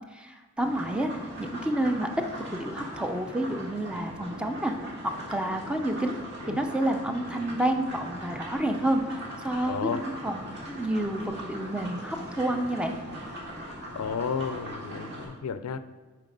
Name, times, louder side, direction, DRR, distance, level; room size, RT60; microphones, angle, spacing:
voice 1, 0.1-1.1 1.4-2.1 2.5-4.7 5.3-6.2 6.5-9.0 9.4-12.9, right 1 dB, 5° right, 5 dB, 0.5 m, -29 dB
sound 1, 0.6-15.3, right 1 dB, 50° right, 2.1 m, -40 dB
voice 2, 9.7-10.0 14.0-15.8, left 6 dB, 85° left, 12 dB, 0.4 m, -32 dB
7.5 x 4.9 x 5.2 m, 1.3 s
head